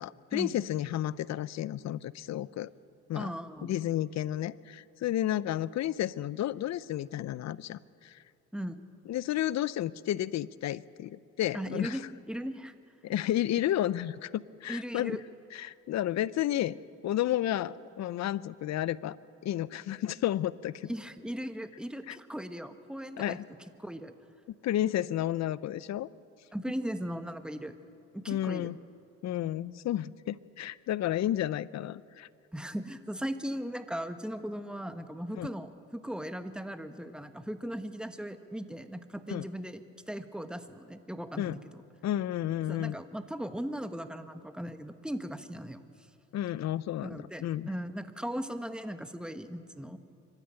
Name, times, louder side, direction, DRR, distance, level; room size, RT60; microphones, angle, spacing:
voice 1, 0.0-2.7 3.1-3.3 3.6-8.2 9.1-12.0 13.0-15.2 15.5-16.8 17.0-19.2 19.4-20.9 22.1-22.2 23.2-23.5 24.6-26.1 28.3-28.8 29.2-32.3 35.3-35.5 39.3-39.5 41.4-41.6 42.0-43.0 46.3-47.7, left 12 dB, 65° left, 19 dB, 0.6 m, -32 dB
voice 2, 3.1-3.7 8.5-8.8 11.5-12.7 14.7-15.2 20.9-23.4 23.8-24.1 26.5-27.7 28.1-28.7 32.5-41.6 42.7-45.8 47.0-50.0, equal, 5° right, 9 dB, 1.1 m, -38 dB
24.5 x 13.0 x 8.8 m, 2.5 s
cardioid pair, 90°, 30 cm